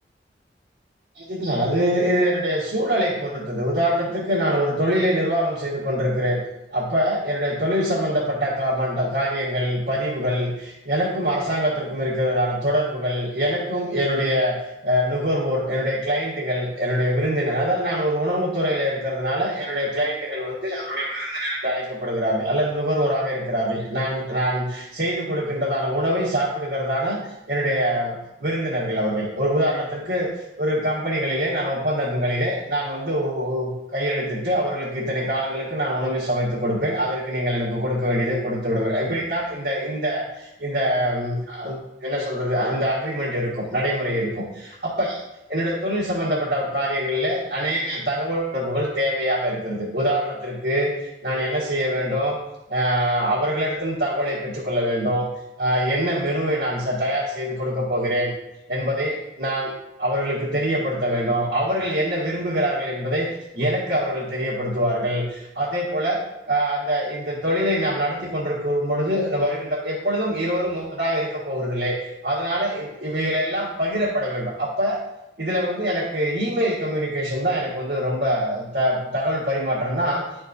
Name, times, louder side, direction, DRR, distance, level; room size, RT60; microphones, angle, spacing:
voice 1, 1.1-6.4 6.7-30.3 30.6-45.2 45.5-52.4 52.7-55.3 55.6-58.3 58.7-66.2 66.5-72.0 72.2-75.0 75.4-80.2, equal, 55° right, -9 dB, 1.6 m, -24 dB
10.5 x 4.3 x 2.6 m, 0.89 s
head